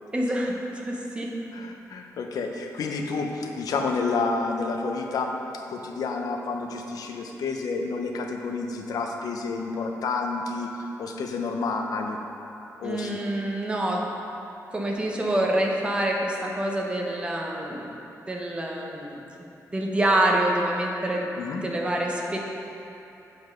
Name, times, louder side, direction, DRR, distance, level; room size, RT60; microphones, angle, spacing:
voice 1, 0.1-1.3 12.8-14.0 14.7-17.9 18.3-19.2 19.7-21.2 21.6-22.4, right 1 dB, 15° right, -1 dB, 0.8 m, -26 dB
voice 2, 1.5-12.2 12.8-13.2 21.4-21.6, left 4 dB, 80° left, 3 dB, 0.7 m, -30 dB
8.0 x 5.1 x 5.2 m, 2.9 s
wide cardioid pair, 160°, 6 cm